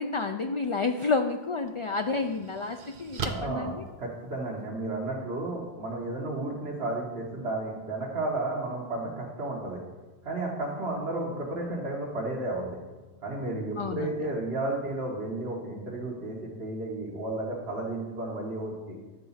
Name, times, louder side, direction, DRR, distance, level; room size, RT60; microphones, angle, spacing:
voice 1, 0.0-3.8 13.8-14.3, left 3 dB, 55° left, 6 dB, 0.3 m, -30 dB
sound 1, 0.9-1.1 1.7-4.7, right 5 dB, 60° right, 0.9 m, -39 dB
voice 2, 3.3-3.7 4.0-9.8 10.2-12.8 13.2-18.9, right 2 dB, 80° right, -4 dB, 1.6 m, -33 dB
10.5 x 4.0 x 7.2 m, 1.2 s
omnidirectional pair, 1.1 m